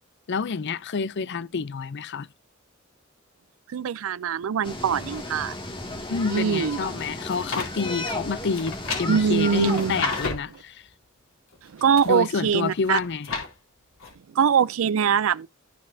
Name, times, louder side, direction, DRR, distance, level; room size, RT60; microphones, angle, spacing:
voice 1, 0.3-2.3 6.1-10.8 12.0-13.3, left 5 dB, 55° left, 0.5 m, -28 dB
voice 2, 3.7-5.6 6.3-7.0 9.1-10.0 11.6-13.0 14.3-15.5, right 7 dB, 70° right, 0.4 m, -23 dB
sound 1, 4.6-10.3, left 2 dB, 25° left, 2.1 m, -34 dB
sound 2, 7.0-7.7 8.5-10.6 11.5-12.2 12.7-13.5 14.0-14.1, left 3 dB, 75° left, 4.2 m, -32 dB
15.0 x 5.3 x 2.7 m
head